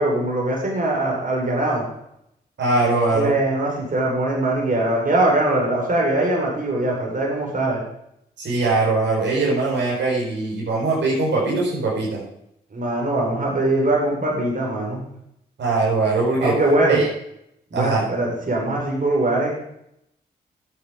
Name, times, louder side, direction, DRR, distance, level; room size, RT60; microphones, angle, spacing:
voice 1, 0.0-1.9 3.1-7.8 12.7-15.0 16.4-17.0 17.7-19.6, right 2 dB, 45° right, -2 dB, 4.8 m, -21 dB
voice 2, 2.6-3.3 8.4-12.2 15.6-16.5 16.9-17.1 17.7-18.0, right 3 dB, 65° right, -4 dB, 4.7 m, -21 dB
11.5 x 8.9 x 5.2 m, 0.78 s
hypercardioid pair, 40°, 20 cm